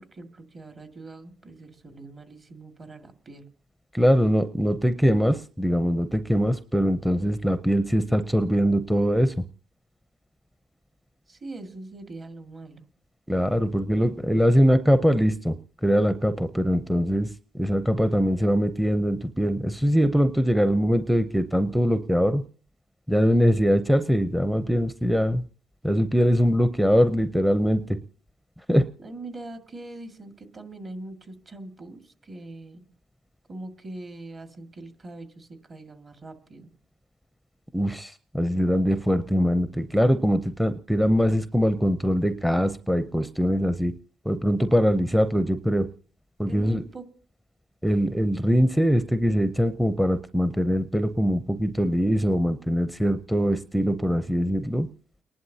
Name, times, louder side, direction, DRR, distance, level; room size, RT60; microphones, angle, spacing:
voice 1, 0.0-3.5 11.3-12.9 29.0-32.8 33.5-36.7 46.5-47.0, right 2 dB, 40° right, 7 dB, 2.0 m, -42 dB
voice 2, 3.9-9.3 13.3-22.4 23.1-25.4 25.8-28.0 28.7-28.8 37.7-43.9 44.3-45.9 46.4-46.8 47.8-54.9, equal, ahead, 11 dB, 0.6 m, -22 dB
30.0 x 11.0 x 2.8 m, 0.41 s
cardioid pair, 90°, 0 cm